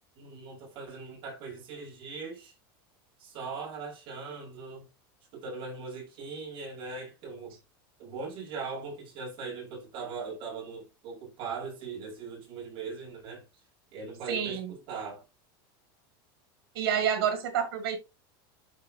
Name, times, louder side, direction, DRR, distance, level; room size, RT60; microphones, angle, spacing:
voice 1, 0.2-2.5 3.2-4.9 5.3-7.6 8.0-13.5 13.9-15.2, right 4 dB, 40° right, 5.3 m, -40 dB
voice 2, 14.3-14.7 16.7-18.0, right 8 dB, 85° right, 2.4 m, -28 dB
12.5 x 4.4 x 2.8 m
supercardioid pair, 165°, 12 cm